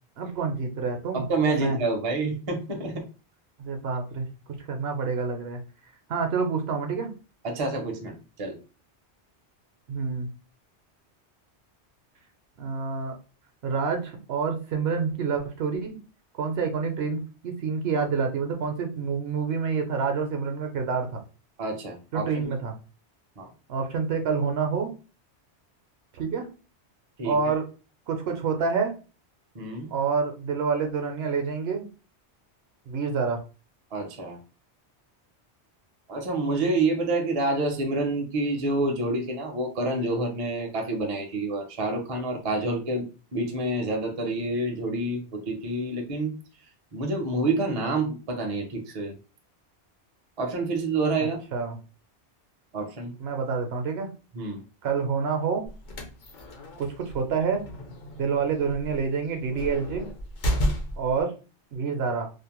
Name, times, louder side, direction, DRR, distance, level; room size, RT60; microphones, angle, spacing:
voice 1, 0.2-1.8 3.6-5.6 6.1-7.1 9.9-10.3 12.6-13.2 13.6-16.0 16.4-21.2 22.1-22.8 23.7-24.9 26.1-26.5 27.2-27.6 28.1-28.9 29.9-31.9 32.9-33.4 51.2-51.8 53.2-54.1 54.8-55.6 56.8-57.6 58.2-60.1 61.0-61.3 61.7-62.3, right 5 dB, 70° right, 5 dB, 0.8 m, -28 dB
voice 2, 1.1-3.1 7.4-8.6 21.6-22.5 23.4-23.5 27.2-27.5 29.5-29.9 33.9-34.4 36.1-43.1 43.3-46.3 46.9-49.1 50.4-51.4 52.7-53.1 54.3-54.6, right 2 dB, 45° right, 3 dB, 0.5 m, -28 dB
sound 1, 55.7-61.2, equal, 50° left, 0.7 m, -32 dB
2.5 x 2.0 x 2.8 m, 0.34 s
omnidirectional pair, 1.2 m